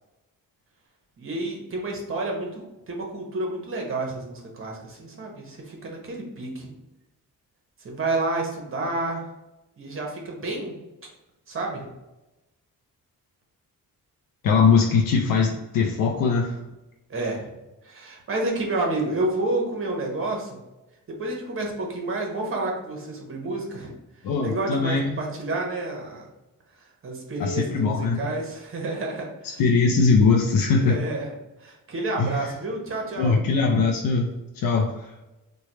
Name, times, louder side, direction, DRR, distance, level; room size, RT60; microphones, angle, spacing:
voice 1, 1.2-6.7 7.8-9.2 9.8-10.7 11.5-11.9 17.1-17.5 17.8-20.6 21.1-23.9 24.4-26.3 26.8-29.3 30.8-31.3 31.6-33.3, right 2 dB, 40° right, 0 dB, 0.9 m, -30 dB
voice 2, 14.4-16.6 24.2-25.2 27.4-28.2 29.6-31.0 32.2-32.5 33.2-34.3 34.5-35.1, left 4 dB, 75° left, 0 dB, 0.5 m, -21 dB
3.2 x 2.2 x 4.0 m, 1.0 s
wide cardioid pair, 145°, 34 cm